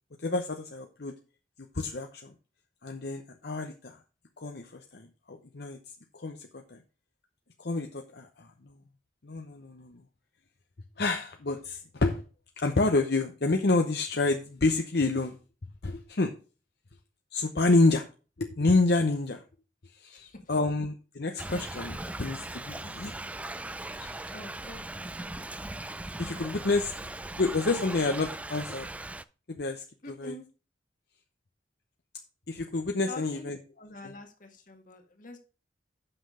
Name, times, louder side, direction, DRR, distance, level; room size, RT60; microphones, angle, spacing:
voice 1, 0.2-1.1 1.7-2.3 2.8-4.0 4.4-6.8 7.6-8.8 9.2-10.0 11.0-12.2 12.6-15.4 15.8-16.3 17.3-18.1 18.4-19.4 19.8-23.1 23.9-24.2 26.2-26.9 27.4-28.9 29.5-30.3 32.5-33.6 34.0-34.1, left 3 dB, 65° left, 4 dB, 0.8 m, -29 dB
voice 2, 20.1-20.5 24.3-24.9 25.2-25.5 30.0-30.5 33.1-33.5 33.8-35.4, left 2 dB, 50° left, 5 dB, 1.7 m, -46 dB
Thunder / Rain, 21.4-29.2, right 2 dB, 10° right, 0.3 m, -39 dB
8.0 x 6.0 x 5.0 m, 0.34 s
head